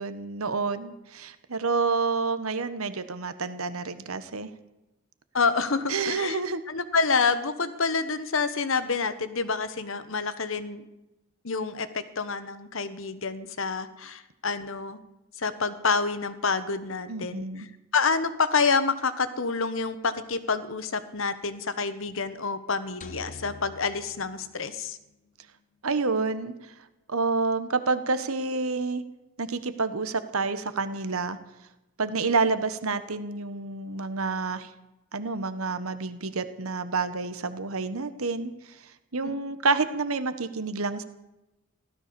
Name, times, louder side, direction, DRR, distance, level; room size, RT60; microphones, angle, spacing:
voice 1, 0.0-4.5 5.9-6.6 17.1-17.7 25.8-26.5 27.1-29.0 29.4-31.4 32.0-34.7 35.1-38.5 39.1-41.0, right 4 dB, 80° right, 12 dB, 1.3 m, -28 dB
voice 2, 5.3-6.4 6.7-10.8 11.4-15.0 15.4-17.7 17.9-25.0 39.2-39.4, left 4 dB, 70° left, 12 dB, 1.2 m, -28 dB
sound 1, 23.0-25.3, left 3 dB, 35° left, 1.0 m, -46 dB
16.0 x 13.0 x 6.9 m, 0.97 s
head